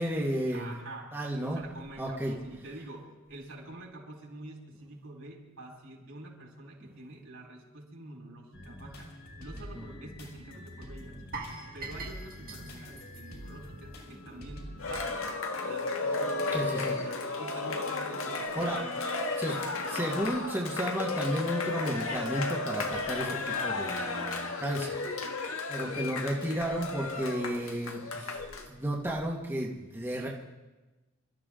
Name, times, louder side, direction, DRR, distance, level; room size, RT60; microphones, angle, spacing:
voice 1, 0.0-0.7 1.1-1.6 2.0-2.3 9.7-9.8 16.5-17.0 18.5-18.8 19.4-25.0 25.7-28.3 28.7-30.3, right 1 dB, 10° right, -4 dB, 1.7 m, -33 dB
voice 2, 0.5-11.3 11.7-15.3 15.6-19.0 25.8-26.3, right 1 dB, 70° right, -1 dB, 4.6 m, -47 dB
sound 1, 8.5-15.0, equal, 60° left, 5.1 m, -46 dB
sound 2, 11.3-14.3 14.6-14.8 15.3-15.4, right 3 dB, 45° right, 1.8 m, -44 dB
Cheering, 14.8-28.7, left 3 dB, 75° left, 1.7 m, -33 dB
27.0 x 13.0 x 3.8 m, 1.1 s
head